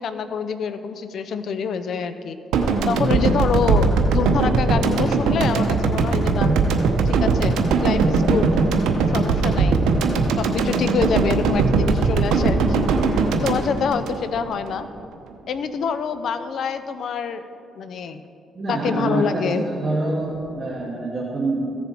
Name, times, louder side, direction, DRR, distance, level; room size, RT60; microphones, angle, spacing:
voice 1, 0.0-2.4 2.9-6.5 7.1-8.6 9.1-9.8 10.4-14.9 15.5-17.4 17.8-18.2 18.7-19.6, left 6 dB, 65° left, 11 dB, 0.5 m, -26 dB
sound 1, 2.5-14.7, right 4 dB, 85° right, 0.8 m, -20 dB
voice 2, 18.6-21.7, right 2 dB, 30° right, -6 dB, 1.8 m, -26 dB
15.0 x 7.0 x 4.5 m, 2.6 s
cardioid pair, 90°, 0 cm